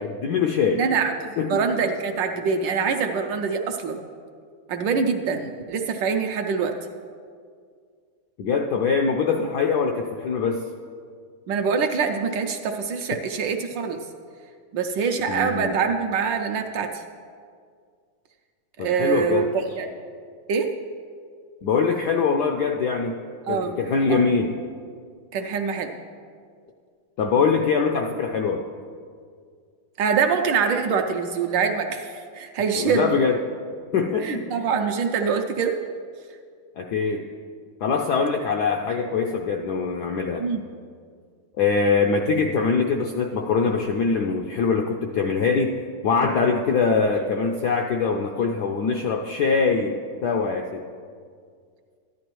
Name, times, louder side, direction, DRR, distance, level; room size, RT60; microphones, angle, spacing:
voice 1, 0.0-0.8 1.4-1.6 8.4-10.6 15.3-15.7 18.8-19.5 21.6-23.2 23.5-24.6 27.2-28.6 32.7-33.4 33.9-34.7 36.8-37.2 37.8-40.4 41.6-45.8 46.0-50.8, left 5 dB, 75° left, 3 dB, 0.9 m, -23 dB
voice 2, 0.8-4.0 4.7-6.7 11.5-14.0 14.7-17.0 18.8-19.9 20.5-20.7 23.5-23.7 24.1-24.2 25.3-25.9 30.0-33.2 34.2-35.8 40.4-40.6, right 5 dB, 75° right, 4 dB, 1.2 m, -24 dB
14.0 x 11.0 x 3.0 m, 2.1 s
omnidirectional pair, 2.3 m